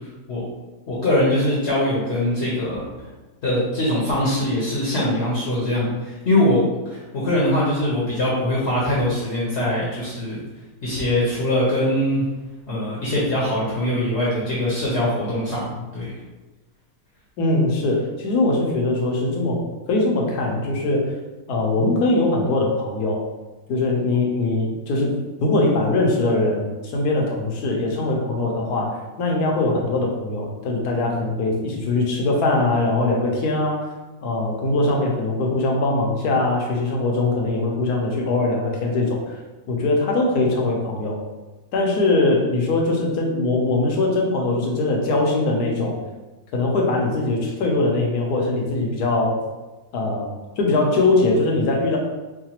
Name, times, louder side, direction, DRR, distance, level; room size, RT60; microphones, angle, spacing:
voice 1, 0.9-2.8 3.4-6.6 6.9-10.4 10.8-12.2 12.7-16.1, left 1 dB, 50° left, -6 dB, 0.9 m, -22 dB
voice 2, 17.4-19.6 19.9-21.1 21.5-23.2 23.7-25.1 25.4-33.9 34.2-39.4 39.7-41.2 41.7-46.0 46.5-49.4 49.9-52.0, left 2 dB, 75° left, -1 dB, 1.2 m, -21 dB
4.8 x 2.2 x 2.9 m, 1.2 s
omnidirectional pair, 1.7 m